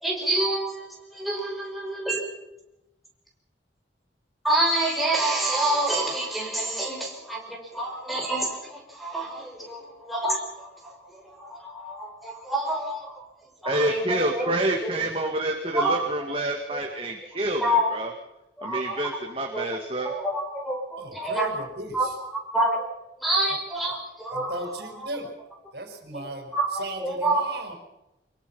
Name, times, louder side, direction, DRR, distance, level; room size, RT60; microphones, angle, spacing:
voice 1, 0.0-2.2 4.4-13.2 13.6-14.5 14.8-14.9 15.7-16.3 17.6-17.9 18.6-19.0 19.5-19.7 20.0-21.5 21.9-22.9 23.2-25.1 26.1-27.5, right 1 dB, ahead, -2 dB, 5.5 m, -28 dB
voice 2, 13.6-18.1 18.6-20.1, right 1 dB, 30° right, 2 dB, 2.3 m, -28 dB
voice 3, 21.0-22.1 24.3-25.3 25.7-27.8, right 1 dB, 60° right, 4 dB, 4.9 m, -36 dB
24.5 x 22.5 x 5.7 m, 0.92 s
head